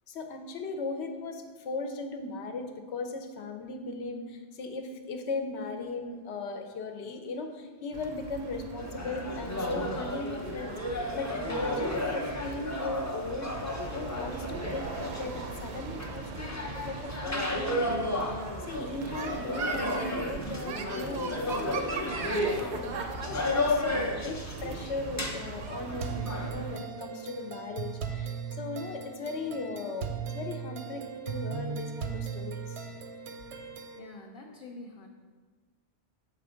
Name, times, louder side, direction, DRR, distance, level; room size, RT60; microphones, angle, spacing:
voice 1, 0.1-13.6 13.9-24.0 24.2-30.1 30.3-32.9, left 3 dB, 85° left, 6 dB, 0.9 m, -38 dB
sound 1, 7.9-26.8, right 4 dB, 55° right, 0.6 m, -40 dB
sound 2, 8.8-26.5, left 1 dB, 25° left, 0.4 m, -33 dB
sound 3, 26.0-34.0, right 6 dB, 85° right, 0.9 m, -38 dB
voice 2, 34.0-35.1, left 2 dB, 60° left, -1 dB, 0.7 m, -46 dB
7.3 x 3.4 x 5.0 m, 1.4 s
omnidirectional pair, 1.1 m